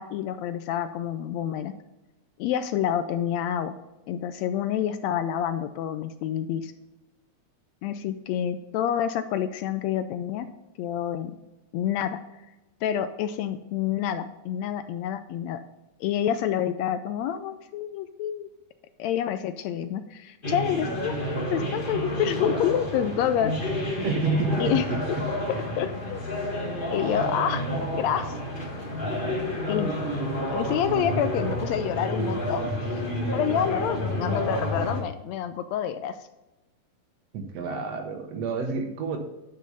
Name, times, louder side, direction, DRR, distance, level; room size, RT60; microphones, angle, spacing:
voice 1, 0.0-1.7 2.4-3.7 4.1-6.7 7.8-10.5 10.8-11.3 11.7-12.2 12.8-15.6 16.0-18.5 19.0-23.5 23.8-24.0 24.6-24.9 25.8-26.2 26.9-27.7 27.9-28.4 29.7-30.0 30.5-33.0 33.3-36.2, left 9 dB, 80° left, 11 dB, 1.7 m, -28 dB
sound 1, 20.4-35.0, left 1 dB, 35° left, 0.8 m, -30 dB
voice 2, 24.0-25.3 27.0-27.2 37.3-39.2, right 3 dB, 65° right, 5 dB, 2.0 m, -29 dB
9.5 x 5.2 x 5.5 m, 1.0 s
omnidirectional pair, 3.4 m